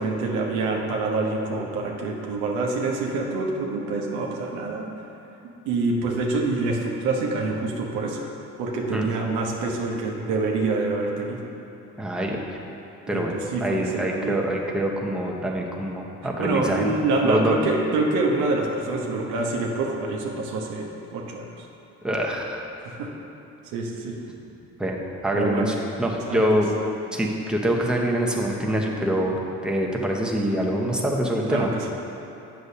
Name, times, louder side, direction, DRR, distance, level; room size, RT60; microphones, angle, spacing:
voice 1, 0.0-4.9 5.4-8.2 8.6-11.4 13.1-14.4 16.4-21.7 22.8-23.1 23.6-24.2 25.3-25.7 26.3-26.5 31.5-31.9, right 3 dB, 90° right, 0 dB, 0.8 m, -26 dB
voice 2, 12.0-12.6 13.1-13.3 13.6-16.9 17.2-17.5 22.0-22.6 24.8-26.7 27.1-31.7, right 1 dB, 5° right, -2 dB, 0.9 m, -25 dB
7.9 x 6.7 x 2.8 m, 2.9 s
supercardioid pair, 70°, 29 cm